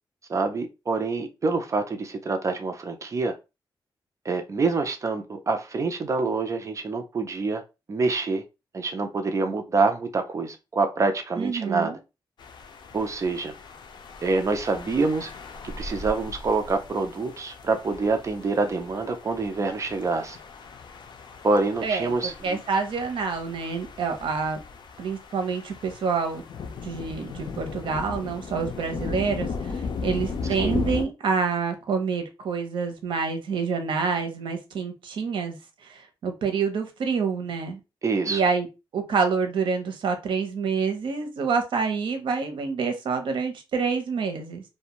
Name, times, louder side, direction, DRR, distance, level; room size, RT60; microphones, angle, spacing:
voice 1, 0.3-3.3 4.2-7.6 7.9-8.4 8.7-12.0 12.9-13.5 14.2-15.3 15.8-20.4 21.4-22.6 30.6-30.8 38.0-38.4, right 3 dB, 40° right, 0.4 m, -26 dB
voice 2, 11.4-12.0 21.8-22.1 22.4-24.6 25.0-26.4 26.8-35.6 35.8-37.8 38.3-38.7 38.9-44.6, right 5 dB, 80° right, 0.7 m, -27 dB
sound 1, 12.4-31.0, left 4 dB, 65° left, 0.4 m, -37 dB
2.5 x 2.2 x 2.9 m
wide cardioid pair, 125°, 8 cm